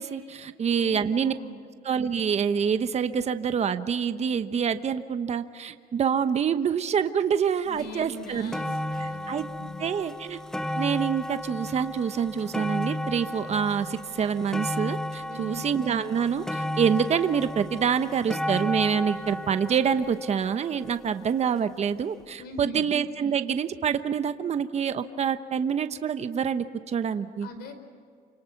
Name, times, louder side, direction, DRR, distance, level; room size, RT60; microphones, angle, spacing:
voice 1, 0.0-1.3 1.8-8.5 9.0-9.4 9.8-10.4 10.8-27.5, right 7 dB, 40° right, 10 dB, 1.1 m, -26 dB
voice 2, 0.6-1.6 7.6-9.8 15.3-15.7 22.4-22.8 27.4-27.7, left 1 dB, 75° left, 8 dB, 4.6 m, -41 dB
sound 1, 7.8-7.9 8.2-21.4 22.2-22.3, left 1 dB, 5° left, 0.7 m, -34 dB
29.0 x 26.0 x 6.0 m, 2.1 s
cardioid pair, 110°, 17 cm